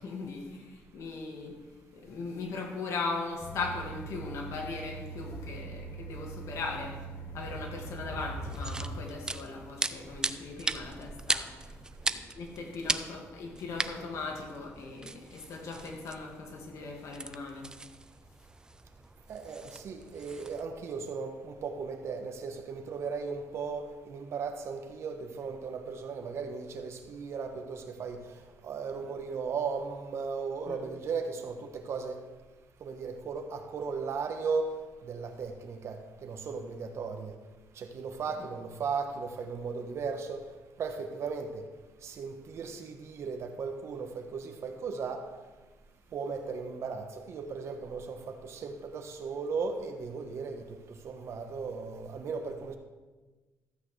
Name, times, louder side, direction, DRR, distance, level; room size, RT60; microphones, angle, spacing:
voice 1, 0.0-1.6 1.9-7.1 7.3-11.8 12.1-17.7 30.7-30.8, left 3 dB, 65° left, 1 dB, 2.1 m, -39 dB
sound 1, 3.4-9.1, right 3 dB, 30° left, 1.4 m, -41 dB
sound 2, 8.4-20.6, right 2 dB, 15° right, 0.4 m, -38 dB
voice 2, 19.3-21.3 21.6-23.8 24.1-28.2 28.6-32.1 32.8-34.7 35.1-35.9 36.2-37.3 37.9-40.4 40.8-41.6 42.0-44.1 44.3-45.2 46.1-48.0 48.5-50.5 51.0-52.8, right 5 dB, 55° right, 6 dB, 1.1 m, -36 dB
13.0 x 8.5 x 3.3 m, 1.2 s
cardioid pair, 105°, 5 cm